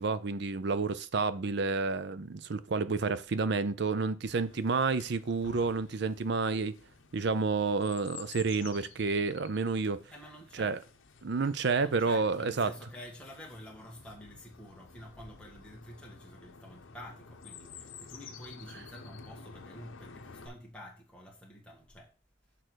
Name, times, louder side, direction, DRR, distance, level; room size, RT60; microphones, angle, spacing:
voice 1, 0.0-6.7 7.1-10.0 10.6-10.8 11.2-12.7, right 4 dB, 55° right, 0.5 m, -30 dB
Chirp tweet, 4.2-20.5, left 5 dB, 80° left, 0.9 m, -52 dB
voice 2, 10.1-10.8 11.8-22.1, equal, 5° left, 1.6 m, -49 dB
6.7 x 3.8 x 6.2 m
head